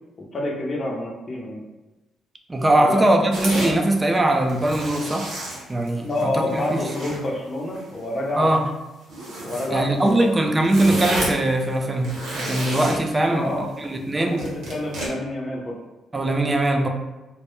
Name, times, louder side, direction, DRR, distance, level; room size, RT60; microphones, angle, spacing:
voice 1, 0.3-1.6 2.8-3.0 6.0-8.6 9.4-10.4 13.3-13.7 14.2-15.8, left 1 dB, 35° left, -1 dB, 0.6 m, -27 dB
voice 2, 2.5-5.3 5.7-6.8 8.4-8.6 9.7-14.5 16.1-16.9, right 1 dB, 20° right, 3 dB, 0.3 m, -21 dB
sound 1, 3.3-3.7 4.4-6.2 6.5-7.2 7.7-8.0 9.1-9.7 10.0-10.1 10.4-11.4 11.9-13.1 14.4-15.1, right 1 dB, 85° right, 0.7 m, -30 dB
2.1 x 2.1 x 2.9 m, 1.1 s
cardioid pair, 90°, 0 cm